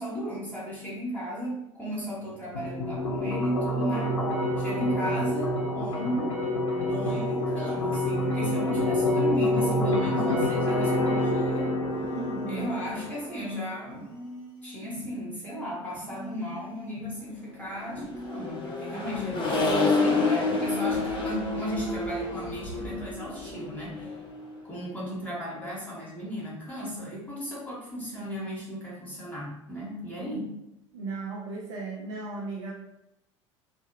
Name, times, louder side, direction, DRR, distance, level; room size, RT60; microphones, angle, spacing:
voice 1, 0.0-4.2 4.6-6.4 6.7-11.8 12.5-14.0 14.6-24.1 24.6-30.5, equal, 10° left, -6 dB, 1.0 m, -35 dB
sound 1, 2.5-13.6, left 1 dB, 75° left, 0.5 m, -27 dB
sound 2, 6.9-8.1 9.9-11.1 11.9-13.1 13.9-15.1 15.9-17.1 17.9-19.1 19.9-21.1 21.9-22.2, left 1 dB, 35° right, 0.9 m, -44 dB
voice 2, 12.1-12.7 30.9-32.7, right 4 dB, 65° right, -3 dB, 0.5 m, -36 dB
Accelerating revving vroom, 17.9-24.6, left 3 dB, 30° left, 0.7 m, -29 dB
2.6 x 2.1 x 2.6 m, 0.84 s
figure-of-eight pair, 70°, 16 cm